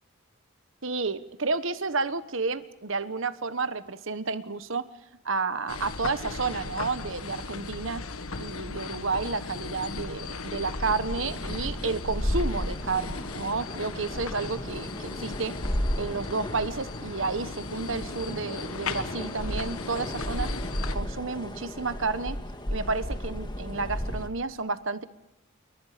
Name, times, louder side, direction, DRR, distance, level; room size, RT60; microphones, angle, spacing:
voice 1, 0.8-4.9 5.2-8.0 8.4-15.6 16.0-20.5 20.9-22.4 22.7-25.0, right 4 dB, 60° right, 13 dB, 1.2 m, -31 dB
sound 1, 5.7-21.0, left 3 dB, 80° left, 1.5 m, -37 dB
sound 2, 10.8-24.3, equal, 20° left, 2.0 m, -34 dB
28.5 x 23.5 x 5.1 m, 0.84 s
head